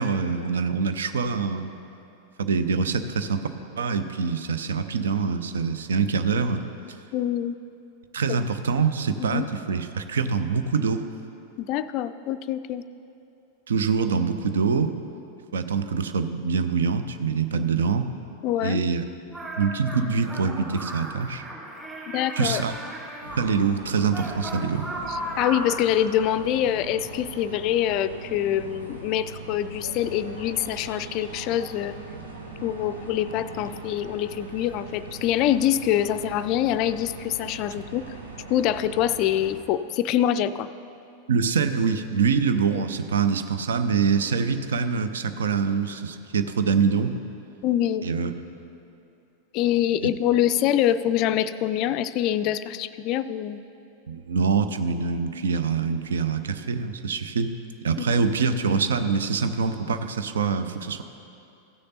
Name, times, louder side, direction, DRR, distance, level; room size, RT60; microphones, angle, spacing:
voice 1, 0.0-1.7 2.4-3.5 3.8-6.6 8.1-11.0 13.7-14.9 15.5-18.1 18.6-19.1 19.6-21.4 22.4-22.7 23.4-24.9 41.3-47.1 48.0-48.3 50.0-50.1 54.1-57.5 57.8-61.0, right 5 dB, 65° right, 10 dB, 0.6 m, -24 dB
voice 2, 7.1-7.5 8.3-8.4 9.3-9.5 11.6-12.8 18.4-18.8 22.1-22.6 25.1-31.9 32.6-38.1 38.5-40.7 47.6-48.1 49.5-53.6 58.0-58.1, left 11 dB, 40° left, 13 dB, 0.3 m, -25 dB
sound 1, 19.3-23.4 23.9-25.8, right 1 dB, 10° right, 2.6 m, -36 dB
sound 2, 23.2-39.5, right 2 dB, 80° right, 1.2 m, -41 dB
15.5 x 6.6 x 4.1 m, 2.7 s
figure-of-eight pair, 90°, 0 cm